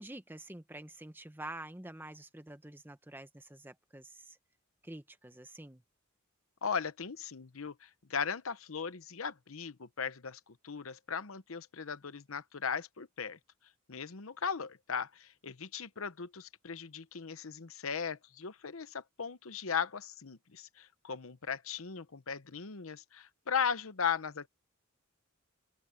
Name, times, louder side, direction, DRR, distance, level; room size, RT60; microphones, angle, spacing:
voice 1, 0.0-4.3 4.8-5.8, right 1 dB, 10° right, 1.0 m, -47 dB
voice 2, 6.6-13.4 13.9-24.5, left 6 dB, 75° left, 0.9 m, -37 dB
head